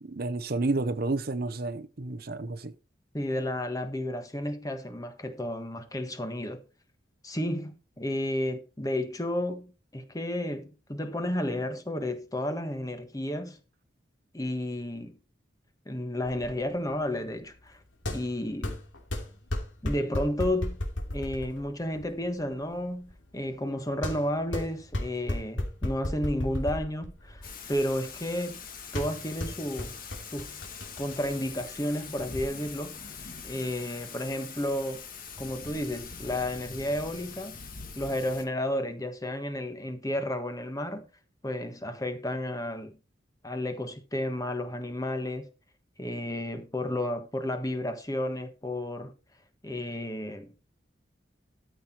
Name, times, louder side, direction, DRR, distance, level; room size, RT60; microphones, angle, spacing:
voice 1, 0.0-2.7, right 2 dB, 50° right, 0.7 m, -30 dB
voice 2, 3.1-6.6 7.2-13.6 14.3-15.2 15.8-17.8 18.1-18.8 19.8-20.8 21.1-28.6 28.9-30.0 30.3-30.6 31.0-33.2 33.4-35.0 35.4-37.6 37.9-41.1 41.4-43.0 43.4-45.5 46.0-49.1 49.6-50.5, left 1 dB, 20° left, 1.3 m, -32 dB
sound 1, 16.3-32.4, left 1 dB, 80° left, 2.7 m, -36 dB
Thunder / Rain, 27.4-38.4, left 5 dB, 45° left, 1.8 m, -43 dB
13.0 x 6.1 x 4.4 m
head